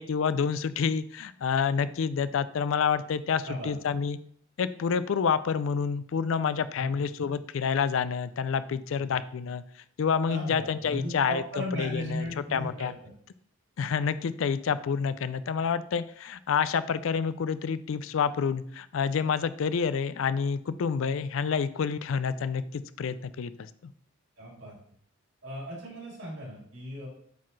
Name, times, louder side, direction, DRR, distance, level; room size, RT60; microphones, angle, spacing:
voice 1, 0.0-4.2 4.6-9.6 10.0-11.4 11.7-12.9 13.8-23.9, left 6 dB, 70° left, 15 dB, 0.4 m, -28 dB
voice 2, 3.4-3.7 6.8-7.0 9.0-9.1 10.3-12.9 24.4-24.8 25.4-27.1, equal, 60° right, -4 dB, 2.8 m, -36 dB
8.2 x 4.1 x 3.2 m, 0.62 s
head